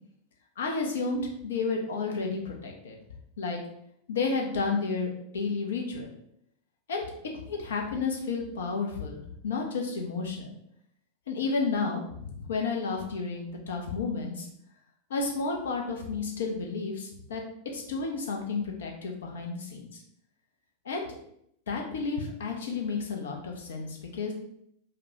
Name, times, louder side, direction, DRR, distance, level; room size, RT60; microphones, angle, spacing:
voice 1, 0.6-3.0 3.4-3.6 4.1-6.1 6.9-7.1 7.3-10.5 11.3-14.5 15.1-17.4 17.7-20.0 20.8-21.1 21.7-24.3, left 4 dB, 65° left, 1 dB, 0.8 m, -31 dB
4.9 x 2.3 x 2.9 m, 0.73 s
figure-of-eight pair, 90°, 0 cm